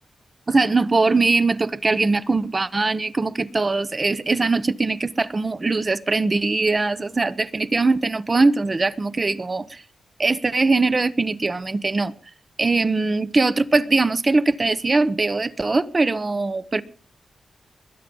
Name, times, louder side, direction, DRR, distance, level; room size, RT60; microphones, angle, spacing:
voice 1, 0.5-9.8 10.2-12.1 12.6-16.8, right 3 dB, 30° right, 0.9 m, -21 dB
21.5 x 10.0 x 5.4 m
wide cardioid pair, 125°, 0 cm